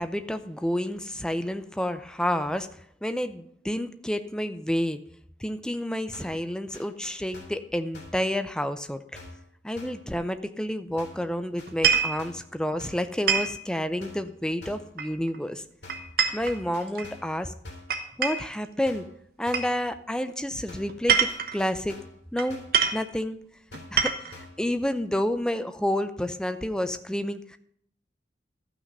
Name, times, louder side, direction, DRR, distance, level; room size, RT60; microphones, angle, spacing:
voice 1, 0.0-2.7 3.0-5.0 5.4-9.2 9.6-15.6 16.3-17.5 18.2-19.1 19.4-22.0 22.3-22.6 22.9-23.4 23.9-27.6, left 1 dB, 5° left, 10 dB, 0.5 m, -29 dB
sound 1, 6.1-6.4 6.7-7.7 7.9-8.3 9.2-9.5 9.8-10.1 11.0-11.3 11.6-12.5 12.8-13.1 14.0-14.3 14.6-14.9 15.8-16.1 16.4-17.4 17.6-18.0 18.9-19.2 19.5-19.8 20.7-21.0 21.3-22.2 22.5-22.8 23.7-24.0 24.3-24.6, left 2 dB, 70° left, 2.9 m, -47 dB
sound 2, 11.7-12.2 13.3-13.6 15.0-15.4 15.9-17.1 17.9-18.5 19.5-19.7 20.9-21.6 22.4-22.5 22.7-23.0 23.7-24.4, right 7 dB, 55° right, 1.0 m, -25 dB
12.5 x 6.0 x 5.4 m, 0.69 s
head